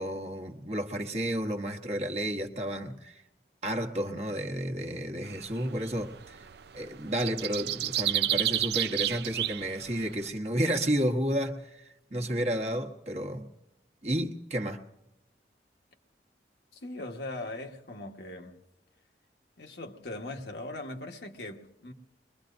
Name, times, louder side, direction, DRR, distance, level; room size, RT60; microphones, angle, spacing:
voice 1, 0.0-3.2 3.6-6.5 6.7-13.5 14.0-14.8, equal, 35° right, 1.1 m, -31 dB
sound 1, 5.2-10.2, right 13 dB, 70° right, 0.5 m, -31 dB
voice 2, 16.7-18.6 19.6-21.9, left 2 dB, 75° left, 1.3 m, -40 dB
23.5 x 22.0 x 2.6 m
head